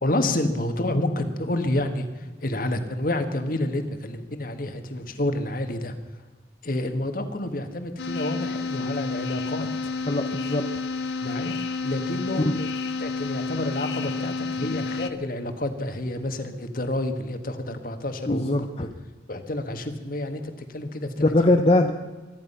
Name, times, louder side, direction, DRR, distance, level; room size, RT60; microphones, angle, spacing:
voice 1, 0.0-6.0 6.6-9.9 11.2-12.7 13.0-18.5 18.8-18.9 19.3-21.5, left 1 dB, 50° left, 7 dB, 1.6 m, -29 dB
sound 1, 8.0-15.1, left 4 dB, 70° left, 1.0 m, -30 dB
voice 2, 10.1-10.8 18.3-18.9 21.2-21.9, left 2 dB, 30° left, 4 dB, 0.8 m, -21 dB
24.0 x 10.5 x 5.6 m, 1.3 s
head